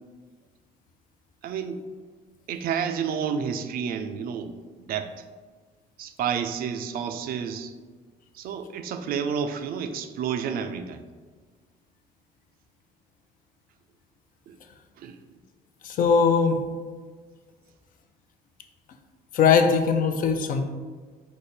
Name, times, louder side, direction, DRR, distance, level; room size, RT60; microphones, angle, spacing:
voice 1, 1.4-1.8 2.5-5.1 6.0-7.7 8.3-11.0 14.5-14.6 15.0-15.2, right 7 dB, 60° right, 8 dB, 0.4 m, -30 dB
voice 2, 15.8-16.6 19.3-20.6, left 6 dB, 55° left, 6 dB, 0.5 m, -20 dB
5.0 x 2.1 x 4.2 m, 1.4 s
cardioid pair, 110°, 17 cm